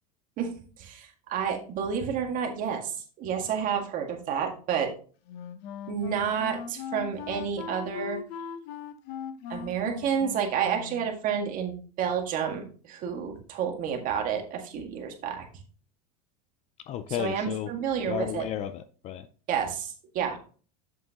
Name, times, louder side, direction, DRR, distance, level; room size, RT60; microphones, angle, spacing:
voice 1, 0.8-2.9 3.2-4.9 5.9-8.2 9.5-15.5 17.2-18.4 19.5-20.4, right 7 dB, 40° right, 1.9 m, -30 dB
Wind instrument woodwind instrument, 5.3-11.2, left 7 dB, 50° left, 0.9 m, -39 dB
voice 2, 16.9-17.7 18.1-19.3, left 10 dB, 35° left, 0.4 m, -33 dB
7.9 x 7.3 x 2.9 m
supercardioid pair, 140°, 21 cm